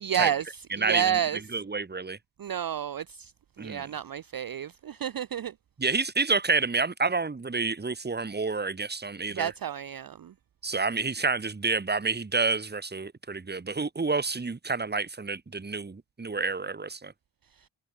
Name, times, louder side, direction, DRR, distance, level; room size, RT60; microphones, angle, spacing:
voice 1, 0.0-1.4 2.4-3.3 3.6-5.5 9.3-10.3 17.6-17.7, right 9 dB, 45° right, 0.7 m, -30 dB
voice 2, 0.7-1.2 1.5-2.2 3.6-3.8 5.8-9.5 10.6-17.1, right 4 dB, 20° right, 1.1 m, -29 dB
cardioid pair, 50°, 49 cm